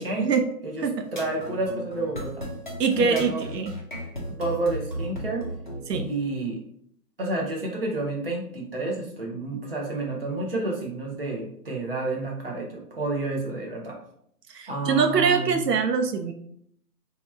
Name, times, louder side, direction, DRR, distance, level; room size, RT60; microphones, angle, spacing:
sound 1, 1.0-6.1, equal, 30° left, 0.5 m, -35 dB
voice 1, 1.1-2.5 3.0-3.4 4.3-5.5 5.9-6.6 7.2-14.0 14.7-15.6, right 2 dB, 35° right, -2 dB, 0.6 m, -30 dB
voice 2, 2.8-3.7 5.9-6.1 14.5-16.3, right 5 dB, 80° right, 6 dB, 0.6 m, -23 dB
2.8 x 2.3 x 4.0 m, 0.68 s
hypercardioid pair, 170°, 48 cm